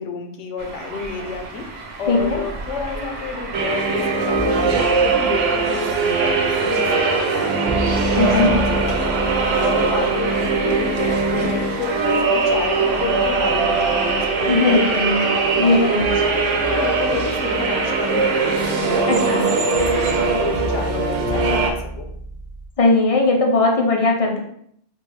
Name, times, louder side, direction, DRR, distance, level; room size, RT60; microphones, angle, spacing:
voice 1, 0.0-9.3 9.6-15.2 15.6-22.1, left 4 dB, 75° left, 4 dB, 0.9 m, -30 dB
sound 1, 0.6-20.1, right 3 dB, 50° right, 0.6 m, -32 dB
voice 2, 2.1-2.4 8.1-8.6 14.4-15.3 15.6-16.1 19.1-19.5 22.8-24.4, left 3 dB, 55° left, 1 dB, 0.4 m, -18 dB
sound 2, 3.5-21.7, right 4 dB, 80° right, 0.9 m, -21 dB
sound 3, 4.3-7.4 7.7-15.2 16.0-22.7, right 1 dB, ahead, 0.7 m, -33 dB
4.1 x 2.2 x 3.1 m, 0.69 s
omnidirectional pair, 1.2 m